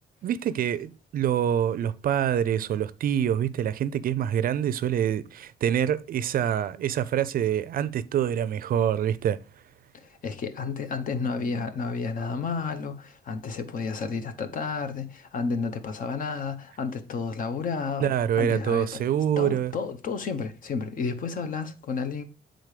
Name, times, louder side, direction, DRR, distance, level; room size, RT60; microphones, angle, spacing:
voice 1, 0.2-9.4 18.0-19.7, right 9 dB, 55° right, 0.4 m, -26 dB
voice 2, 9.9-18.1 18.4-19.0 19.4-22.2, left 5 dB, 50° left, 0.9 m, -31 dB
8.2 x 3.8 x 4.9 m
cardioid pair, 160°, 18 cm